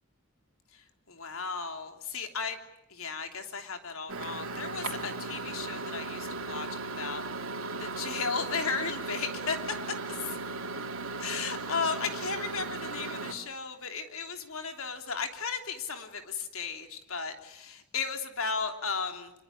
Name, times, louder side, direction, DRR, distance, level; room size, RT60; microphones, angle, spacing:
voice 1, 0.7-2.6 2.9-7.2 7.8-9.6 10.1-10.4 11.2-19.3, left 5 dB, 70° left, 6 dB, 3.2 m, -35 dB
Microwave oven, 4.1-13.3, right 3 dB, 65° right, 3.2 m, -37 dB
26.0 x 22.0 x 10.0 m, 0.88 s
head